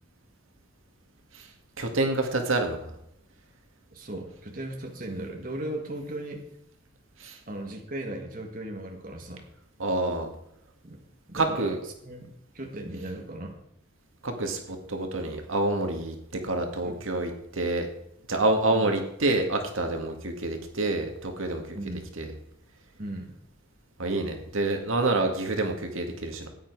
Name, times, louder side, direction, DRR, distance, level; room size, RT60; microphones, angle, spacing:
voice 1, 1.8-2.9 7.2-7.4 9.8-10.3 11.3-11.8 14.2-17.9 18.3-21.8 22.2-22.3 24.0-26.5, right 2 dB, 80° right, 4 dB, 2.0 m, -27 dB
voice 2, 3.9-6.4 7.5-9.4 10.8-11.0 11.3-11.7 12.0-13.6 16.8-16.9 18.7-18.9 21.7-22.0 23.0-23.3, right 1 dB, 40° right, 1 dB, 1.9 m, -37 dB
15.5 x 9.6 x 4.7 m, 0.76 s
head